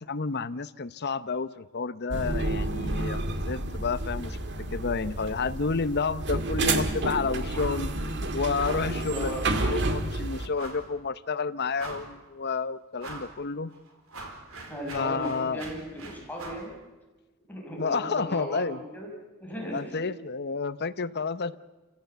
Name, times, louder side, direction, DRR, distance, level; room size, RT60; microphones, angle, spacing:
voice 1, 0.1-4.4 4.7-9.3 9.6-13.7 14.9-15.7 17.8-18.8 19.7-21.6, left 4 dB, 50° left, 14 dB, 0.8 m, -30 dB
sound 1, 2.1-10.5, right 2 dB, 55° right, 1.9 m, -30 dB
sound 2, 7.5-7.9 8.1-8.3 8.6-8.9 9.5-9.9 10.5-10.9 11.4-11.5 11.7-12.3 13.0-13.3 13.7-16.7, right 2 dB, 80° right, 4.2 m, -42 dB
voice 2, 8.8-9.4 14.7-16.7 17.5-19.1 19.4-20.0, equal, 10° left, -1 dB, 6.0 m, -37 dB
29.5 x 16.0 x 8.1 m, 1.2 s
head